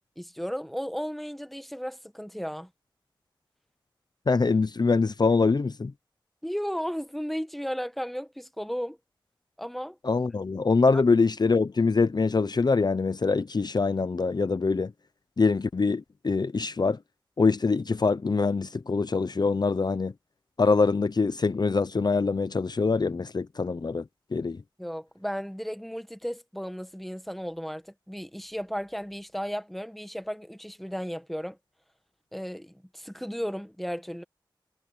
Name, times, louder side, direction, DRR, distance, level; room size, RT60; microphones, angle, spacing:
voice 1, 0.2-2.7 6.4-9.0 9.6-10.0 24.8-31.6 32.3-34.2, equal, ahead, 1.5 m, -34 dB
voice 2, 4.3-5.9 10.0-14.9 15.4-17.0 17.4-20.1 20.6-24.0 24.3-24.6, left 4 dB, 55° left, 0.6 m, -24 dB
wide cardioid pair, 65°, 9 cm